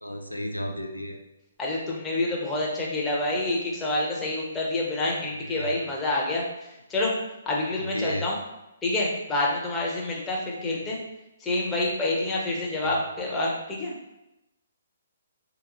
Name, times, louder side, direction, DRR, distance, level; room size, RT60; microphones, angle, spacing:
voice 1, 0.0-1.2 5.2-5.8 7.7-8.3 12.8-12.9, equal, 90° left, 3 dB, 0.5 m, -34 dB
voice 2, 1.6-6.4 6.9-7.1 7.5-8.4 8.8-11.0 11.4-13.9, left 2 dB, 15° left, -4 dB, 0.9 m, -27 dB
4.0 x 2.9 x 3.8 m, 0.94 s
figure-of-eight pair, 130°, 0 cm